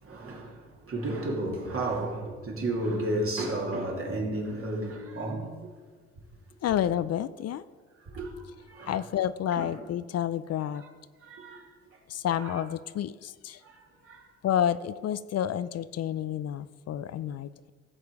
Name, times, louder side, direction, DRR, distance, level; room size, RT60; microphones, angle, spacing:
voice 1, 0.0-5.5 8.1-8.4 8.7-9.0 9.6-9.7 11.2-11.7 12.3-12.6 13.6-13.8 14.0-14.3, right 1 dB, 45° right, 2.7 m, -32 dB
voice 2, 6.6-7.6 8.9-10.8 12.1-13.6 14.4-17.7, left 10 dB, 55° left, 0.5 m, -30 dB
16.0 x 7.3 x 4.8 m
cardioid pair, 90°, 30 cm